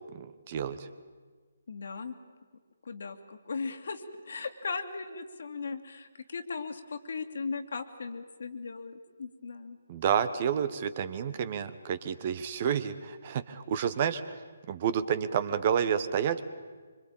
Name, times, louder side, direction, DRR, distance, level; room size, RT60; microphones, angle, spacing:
voice 1, 0.1-0.9 9.9-14.3 14.7-16.4, right 8 dB, 35° right, 13 dB, 1.3 m, -30 dB
voice 2, 1.7-2.2 2.8-9.8, left 4 dB, 55° left, 8 dB, 2.2 m, -38 dB
25.5 x 25.5 x 8.8 m, 1.5 s
figure-of-eight pair, 140°, 0 cm